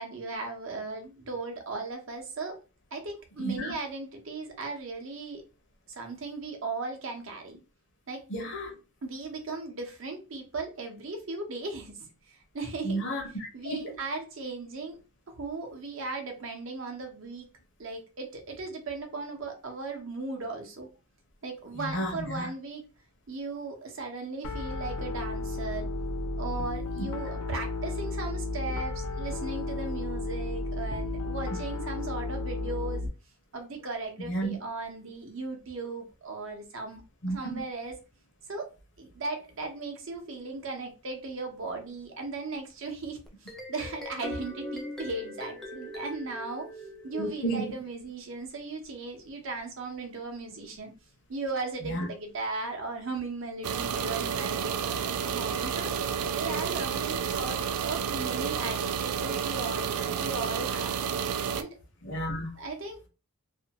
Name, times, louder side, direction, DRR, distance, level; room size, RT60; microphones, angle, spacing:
voice 1, 0.0-2.6 2.9-5.4 6.0-7.6 8.1-8.2 9.0-12.0 12.5-13.0 13.5-15.0 15.3-17.5 17.8-20.9 21.4-22.8 23.3-25.9 26.4-33.1 33.5-37.0 37.3-38.0 38.5-38.7 39.0-43.2 43.7-46.7 47.0-50.9 51.3-55.9 56.3-60.9 61.5-61.8 62.6-63.0, right 3 dB, 60° right, 0.7 m, -37 dB
voice 2, 3.4-3.7 8.3-8.7 12.8-13.8 21.7-22.5 27.0-27.1 34.2-34.6 37.2-37.6 47.1-47.7 51.8-52.0 62.0-62.5, right 1 dB, 55° left, 0.8 m, -32 dB
Piano, 24.4-33.1, left 2 dB, 85° left, 0.5 m, -33 dB
sound 1, 43.3-47.6, left 1 dB, ahead, 0.4 m, -41 dB
sound 2, 53.6-61.6, right 7 dB, 90° right, 0.3 m, -30 dB
2.5 x 2.2 x 2.8 m
head